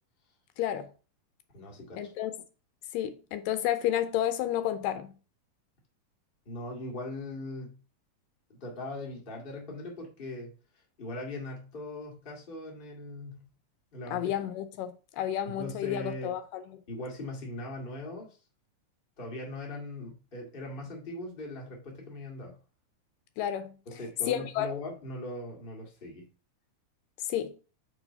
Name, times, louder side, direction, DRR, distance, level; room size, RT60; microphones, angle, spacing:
voice 1, 0.6-0.9 2.0-2.3 2.9-5.1 14.1-16.6 23.4-23.7 24.3-24.7 27.2-27.6, left 11 dB, 80° left, 2.2 m, -31 dB
voice 2, 1.5-2.1 6.4-7.8 8.5-10.5 11.0-13.5 13.9-14.3 15.4-16.4 16.9-18.4 19.2-22.6 23.8-26.3, left 2 dB, 20° left, 1.4 m, -40 dB
4.9 x 4.7 x 5.4 m
omnidirectional pair, 3.9 m